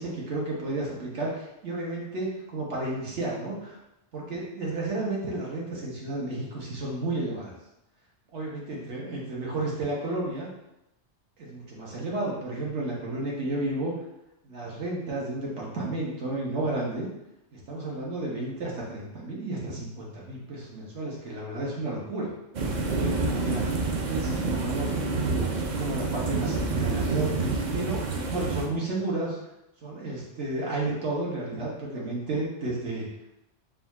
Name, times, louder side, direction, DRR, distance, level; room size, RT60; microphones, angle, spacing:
voice 1, 0.0-3.7 4.1-7.5 8.3-10.5 11.4-13.9 14.4-17.1 17.5-22.3 22.9-23.6 23.9-24.9 25.5-29.4 29.8-33.1, right 2 dB, 75° right, -4 dB, 1.4 m, -32 dB
sound 1, 22.5-28.7, right 3 dB, 50° right, 0.6 m, -28 dB
4.1 x 2.4 x 4.1 m, 0.88 s
omnidirectional pair, 1.2 m